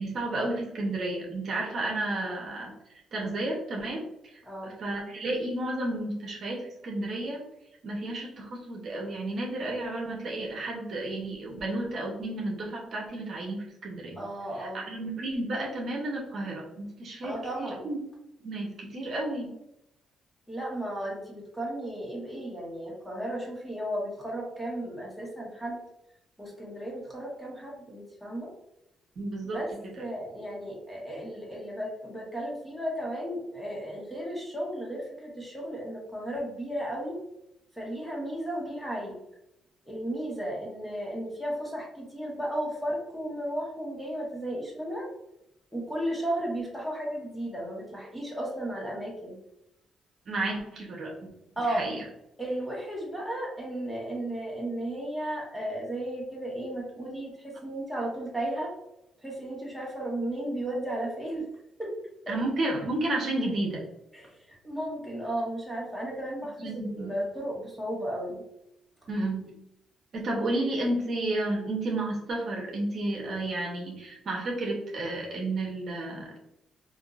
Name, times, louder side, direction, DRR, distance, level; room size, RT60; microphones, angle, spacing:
voice 1, 0.0-2.7 3.1-7.4 7.8-14.2 14.6-18.0 18.4-19.5 29.2-30.0 50.3-51.1 51.7-52.0 62.3-63.8 66.6-67.2 69.1-69.5 70.1-76.4, right 2 dB, 55° right, -1 dB, 0.9 m, -32 dB
voice 2, 4.4-4.7 14.2-14.9 17.2-17.9 20.5-25.8 26.4-28.5 29.5-29.7 30.0-37.2 37.7-39.2 39.9-45.1 45.7-49.4 51.6-51.9 52.4-58.7 59.2-61.5 61.8-62.0 62.3-62.4 64.1-68.4, right 1 dB, ahead, -4 dB, 1.3 m, -34 dB
3.6 x 2.6 x 2.5 m, 0.84 s
cardioid pair, 90°, 0 cm